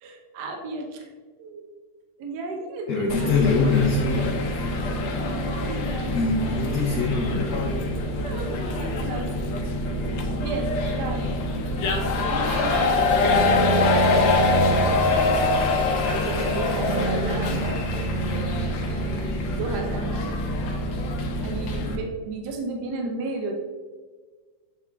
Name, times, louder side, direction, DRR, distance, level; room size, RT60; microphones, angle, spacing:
voice 1, 0.0-1.1 1.4-1.7 2.2-3.6 4.4-6.5 8.1-9.4 10.4-11.4 12.3-14.7 15.2-17.8 18.9-20.2 21.4-23.5, right 3 dB, 65° right, 2 dB, 1.2 m, -34 dB
voice 2, 2.9-4.3 6.1-7.8, left 4 dB, 60° left, -2 dB, 1.2 m, -23 dB
sound 1, 3.1-22.0, left 2 dB, 75° left, 1.5 m, -25 dB
Bowed string instrument, 13.2-20.3, right 5 dB, 85° right, 0.6 m, -30 dB
8.0 x 3.6 x 3.4 m, 1.5 s
omnidirectional pair, 2.1 m